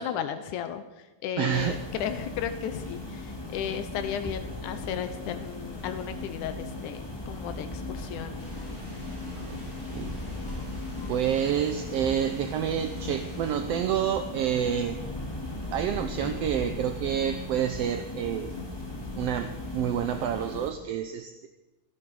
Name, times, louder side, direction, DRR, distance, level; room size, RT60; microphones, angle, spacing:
voice 1, 0.0-8.4, left 8 dB, 85° left, 9 dB, 2.3 m, -34 dB
voice 2, 1.4-1.9 9.3-9.6 9.8-10.2 11.1-15.0 15.7-18.5 19.2-21.5, right 9 dB, 70° right, 8 dB, 1.6 m, -28 dB
sound 1, 1.5-20.7, left 2 dB, 10° left, 1.6 m, -37 dB
sound 2, 8.3-13.5, equal, 20° right, 7.8 m, -48 dB
16.5 x 15.0 x 5.4 m, 1.1 s
omnidirectional pair, 3.5 m